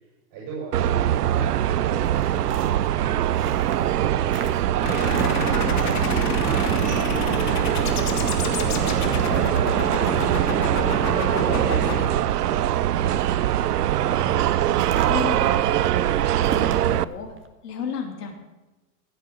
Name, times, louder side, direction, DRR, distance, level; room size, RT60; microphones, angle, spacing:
voice 1, 0.0-8.2 8.7-10.3, right 3 dB, 55° right, -4 dB, 6.9 m, -41 dB
sound 1, 0.7-17.0, right 11 dB, 80° right, 0.6 m, -22 dB
sound 2, 2.0-4.0 4.3-4.7 5.1-6.2 6.5-6.9 7.2-10.5 11.0-11.1 11.5-12.6 13.0-13.5 14.8-16.9 17.3-17.5, right 5 dB, 25° right, 1.7 m, -37 dB
sound 3, 4.8-12.1, left 5 dB, 35° left, 3.0 m, -29 dB
voice 2, 15.1-15.6 16.6-17.3 17.6-18.4, left 7 dB, 80° left, 1 dB, 3.2 m, -32 dB
16.0 x 8.1 x 8.2 m, 1.1 s
hypercardioid pair, 90°, 46 cm